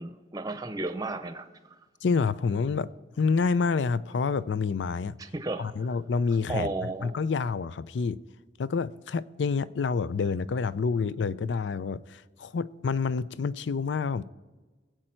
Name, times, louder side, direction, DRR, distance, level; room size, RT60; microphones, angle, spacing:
voice 1, 0.0-1.5 5.2-5.7 6.5-7.2, right 2 dB, 20° right, 0.7 m, -33 dB
voice 2, 2.0-2.9 3.2-5.2 5.6-6.7 7.0-8.2 8.6-14.2, left 5 dB, 85° left, 0.4 m, -28 dB
20.5 x 7.7 x 4.5 m
head